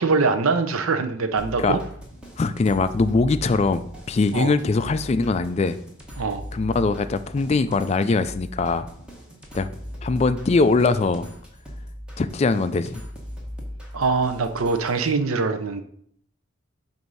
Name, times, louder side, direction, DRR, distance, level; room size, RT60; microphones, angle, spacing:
voice 1, 0.0-1.8 4.3-4.5 6.2-6.4 13.9-15.8, right 4 dB, 85° right, 9 dB, 0.6 m, -23 dB
sound 1, 1.4-15.1, equal, 5° right, 1.1 m, -39 dB
voice 2, 2.4-5.8 6.5-8.9 9.5-9.7 10.0-11.3 12.2-13.0, left 3 dB, 30° left, 11 dB, 0.3 m, -22 dB
7.7 x 2.6 x 5.4 m, 0.67 s
head